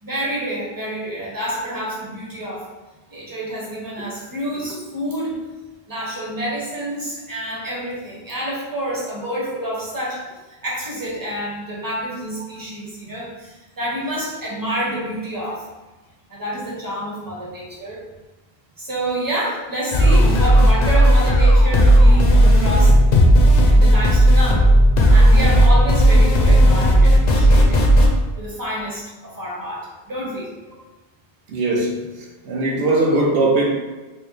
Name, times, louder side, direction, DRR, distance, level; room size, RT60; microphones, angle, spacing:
voice 1, 0.0-2.7 3.1-5.4 5.9-10.2 10.6-15.6 16.3-18.0 18.8-23.0 23.7-24.7 25.1-27.9 28.4-30.5, right 1 dB, 20° right, -5 dB, 0.9 m, -28 dB
sound 1, 19.9-28.1, equal, 55° left, 0.6 m, -13 dB
voice 2, 31.5-32.1 32.5-33.7, right 2 dB, 70° right, 0 dB, 0.9 m, -19 dB
4.6 x 2.0 x 3.1 m, 1.2 s
omnidirectional pair, 1.0 m